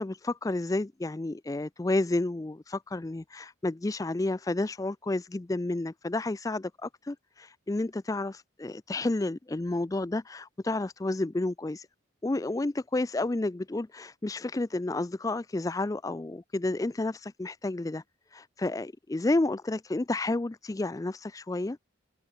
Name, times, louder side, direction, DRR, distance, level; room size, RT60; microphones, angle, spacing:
voice 1, 0.0-11.9 12.2-18.0 18.3-21.8, left 2 dB, 15° left, 0.3 m, -31 dB
head